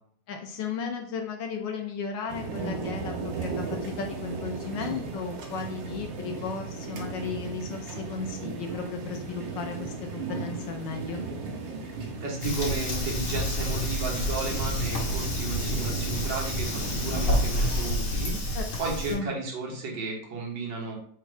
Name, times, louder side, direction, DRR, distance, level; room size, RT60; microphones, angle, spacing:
voice 1, 0.3-11.2 18.5-18.7 19.1-19.3, left 5 dB, 75° left, 4 dB, 1.1 m, -35 dB
sound 1, 2.3-18.0, right 4 dB, 85° right, 1.6 m, -36 dB
voice 2, 12.2-20.9, right 3 dB, 60° right, -2 dB, 1.7 m, -33 dB
Fire, 12.4-19.1, equal, 60° left, 1.7 m, -29 dB
4.2 x 2.3 x 4.7 m, 0.62 s
omnidirectional pair, 2.3 m